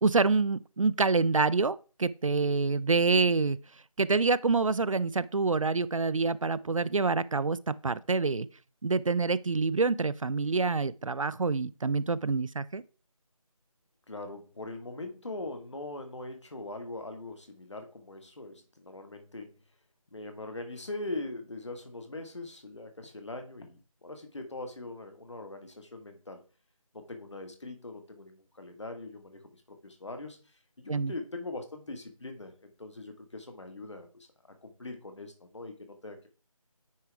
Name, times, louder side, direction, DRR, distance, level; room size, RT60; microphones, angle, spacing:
voice 1, 0.0-3.6 4.0-8.5 8.8-12.8 30.9-31.1, right 4 dB, 65° right, 0.4 m, -27 dB
voice 2, 14.1-19.5 20.1-26.4 26.9-29.4 29.7-34.3 34.6-36.3, left 2 dB, 55° left, 1.6 m, -41 dB
9.4 x 4.7 x 3.4 m
figure-of-eight pair, 180°, 18 cm